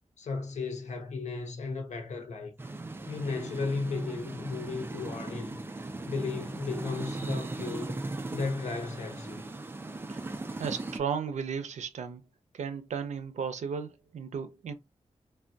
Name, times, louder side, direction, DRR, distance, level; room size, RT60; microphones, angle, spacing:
voice 1, 0.2-2.5 3.1-5.6 6.0-8.0 8.3-9.4, left 4 dB, 75° left, 0.7 m, -35 dB
sound 1, 2.6-11.0, right 2 dB, 20° right, 0.3 m, -38 dB
voice 2, 10.6-12.2 12.5-14.7, right 6 dB, 85° right, 0.5 m, -35 dB
3.3 x 2.2 x 2.6 m
wide cardioid pair, 145°, 12 cm